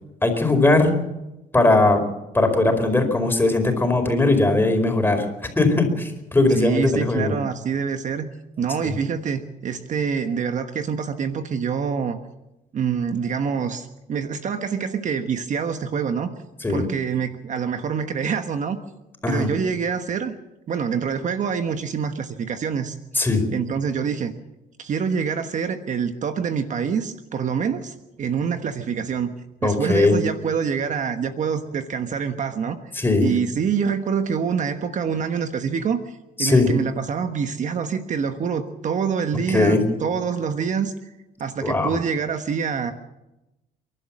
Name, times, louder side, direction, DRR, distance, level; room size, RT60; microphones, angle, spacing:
voice 1, 0.2-0.9 1.5-2.0 2.3-5.3 5.5-7.3 8.8-8.9 16.6-16.8 19.2-19.5 23.1-23.4 29.6-30.2 33.0-33.3 36.4-36.7 39.5-39.8 41.6-41.9, left 2 dB, 10° left, 5 dB, 4.7 m, -19 dB
voice 2, 6.5-8.3 8.6-12.2 12.7-16.3 16.7-18.8 19.3-20.3 20.7-23.0 23.5-24.3 24.8-29.3 29.6-32.8 33.2-41.1 41.4-42.9, right 6 dB, 45° right, 8 dB, 1.3 m, -26 dB
30.0 x 12.0 x 7.4 m, 0.96 s
cardioid pair, 110°, 17 cm